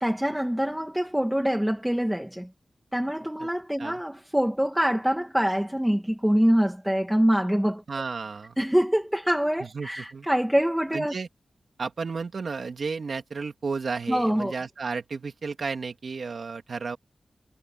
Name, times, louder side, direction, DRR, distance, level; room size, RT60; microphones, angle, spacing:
voice 1, 0.0-2.5 2.9-7.8 8.6-11.1 14.1-14.5, equal, 5° right, 1.8 m, -25 dB
voice 2, 7.9-8.6 9.6-10.3 10.9-11.3 11.8-17.0, right 4 dB, 60° right, 3.0 m, -33 dB
wide cardioid pair, 140°, 0 cm